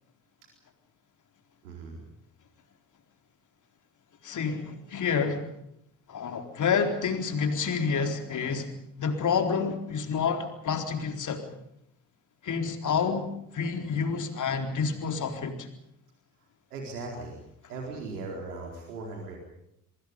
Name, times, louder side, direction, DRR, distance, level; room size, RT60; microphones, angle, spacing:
voice 1, 1.6-2.0 16.7-17.4 17.7-19.4, right 3 dB, 75° right, 1 dB, 4.2 m, -38 dB
voice 2, 4.2-5.5 6.1-8.7 9.0-11.5 12.4-15.7, left 5 dB, 40° left, 5 dB, 4.1 m, -28 dB
27.5 x 23.0 x 5.3 m, 0.77 s
figure-of-eight pair, 55°, 46 cm